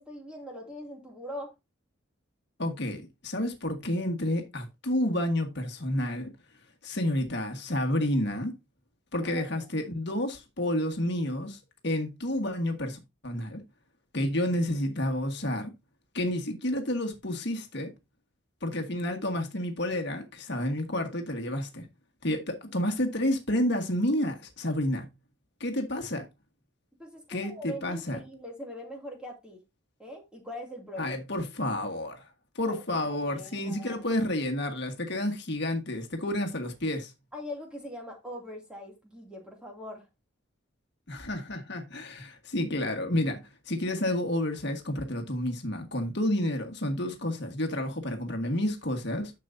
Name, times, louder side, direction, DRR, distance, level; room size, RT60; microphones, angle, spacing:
voice 1, 0.0-1.5 9.2-9.7 27.0-29.6 30.0-31.2 32.7-34.1 37.3-40.1, left 1 dB, 5° right, 2.4 m, -42 dB
voice 2, 2.6-6.3 6.8-8.6 9.1-11.6 11.8-13.6 14.1-15.7 16.1-17.9 18.6-21.8 22.2-25.1 25.6-26.3 27.3-28.2 31.0-32.2 32.5-37.1 41.1-49.3, left 1 dB, 55° left, 1.5 m, -30 dB
10.5 x 6.9 x 2.6 m
head